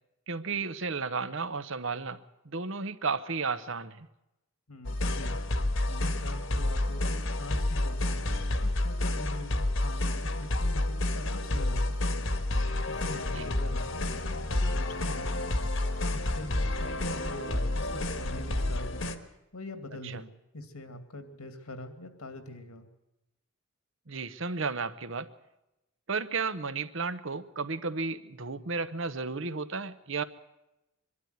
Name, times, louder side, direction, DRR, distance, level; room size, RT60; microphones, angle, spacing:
voice 1, 0.3-2.2 2.4-4.1 13.3-13.5 20.0-20.2 24.1-25.3 26.1-30.2, right 4 dB, 60° right, 13 dB, 0.9 m, -33 dB
voice 2, 4.7-8.2 8.6-12.3 12.6-15.6 16.1-19.1 19.5-22.9, left 1 dB, 85° left, 8 dB, 2.3 m, -43 dB
sound 1, 4.8-19.1, left 1 dB, 60° left, 1.5 m, -30 dB
24.0 x 12.5 x 9.4 m, 0.93 s
head